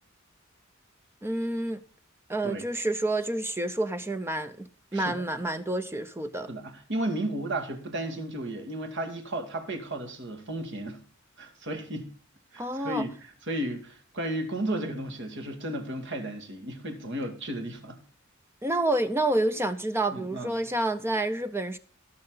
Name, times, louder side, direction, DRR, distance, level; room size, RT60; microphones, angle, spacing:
voice 1, 1.2-1.8 2.3-6.5 12.6-13.1 18.6-21.8, right 1 dB, 10° right, 0.6 m, -29 dB
voice 2, 6.5-11.0 11.4-12.1 12.5-13.1 13.5-18.0 20.1-20.5, right 1 dB, 60° right, 2.4 m, -33 dB
18.0 x 6.6 x 3.9 m
head